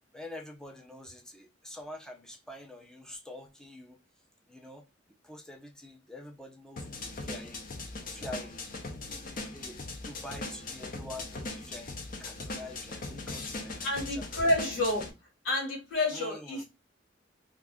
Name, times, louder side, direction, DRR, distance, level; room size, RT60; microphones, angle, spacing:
voice 1, 0.1-4.0 4.5-4.8 5.2-8.6 9.1-14.3 16.1-16.6, left 1 dB, 5° left, 0.5 m, -46 dB
sound 1, 6.8-15.1, left 2 dB, 50° left, 0.6 m, -40 dB
voice 2, 13.8-15.1 15.4-16.6, left 1 dB, 75° left, 1.5 m, -29 dB
2.5 x 2.3 x 3.5 m
head